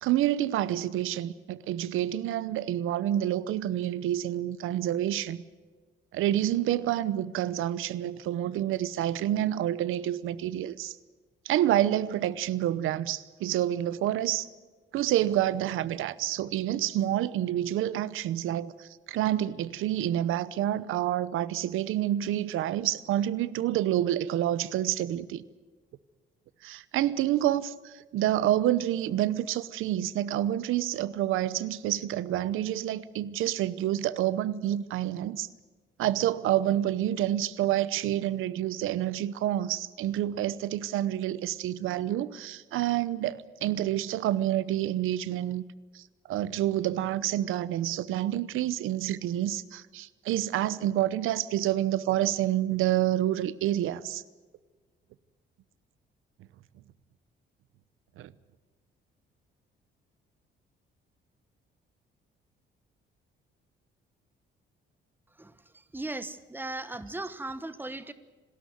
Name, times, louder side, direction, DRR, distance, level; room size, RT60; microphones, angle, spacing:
voice 1, 0.0-5.4 6.1-11.0 11.4-14.5 14.9-25.4 26.6-35.5 36.0-45.6 45.9-54.2 58.2-58.3, right 12 dB, 90° right, 0.9 m, -28 dB
voice 2, 65.9-68.1, right 2 dB, 10° right, 1.2 m, -37 dB
27.0 x 13.0 x 9.3 m
cardioid pair, 130°, 20 cm